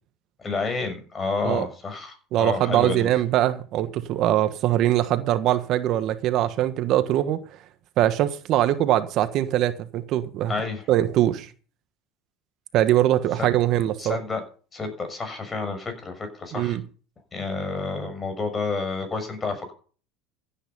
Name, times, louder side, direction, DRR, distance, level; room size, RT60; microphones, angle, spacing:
voice 1, 0.4-3.1 10.5-10.8 13.4-13.5 14.0-14.4 14.7-16.8 17.3-19.7, left 4 dB, 25° left, 7 dB, 6.4 m, -30 dB
voice 2, 2.3-7.4 8.0-10.5 10.9-11.5 12.7-14.2 16.5-16.8, right 13 dB, 55° right, 11 dB, 1.3 m, -22 dB
16.0 x 9.2 x 5.4 m, 0.40 s
supercardioid pair, 95°, 0 cm